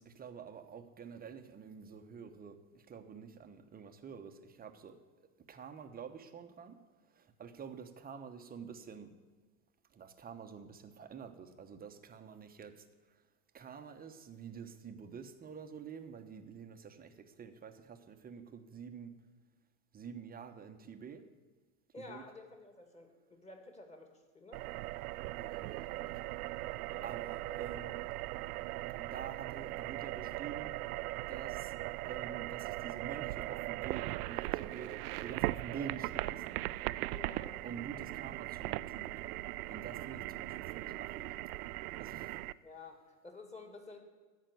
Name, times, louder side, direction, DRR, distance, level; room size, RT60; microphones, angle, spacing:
voice 1, 0.0-9.1 9.9-13.3 13.5-19.1 19.9-21.3 22.0-22.2 25.3-26.2 27.0-28.0 29.0-30.8 31.3-31.7 32.0-36.6 37.6-41.3 42.0-42.5, right 7 dB, 20° right, 7 dB, 0.9 m, -48 dB
voice 2, 21.9-24.6 26.9-27.1 27.5-27.8 37.1-37.6 42.6-44.0, left 3 dB, 15° left, 4 dB, 2.2 m, -52 dB
sound 1, 24.5-42.5, right 18 dB, 80° right, 0.5 m, -39 dB
14.0 x 5.9 x 9.3 m, 1.4 s
supercardioid pair, 120°, 44 cm